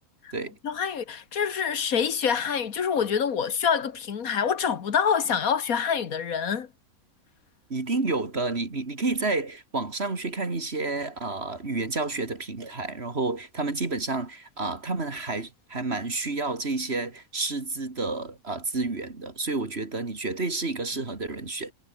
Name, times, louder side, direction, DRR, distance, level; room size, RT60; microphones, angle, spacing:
voice 1, 0.6-6.7, left 7 dB, 70° left, 1.8 m, -26 dB
voice 2, 7.7-21.7, right 3 dB, 45° right, 2.9 m, -30 dB
omnidirectional pair, 1.5 m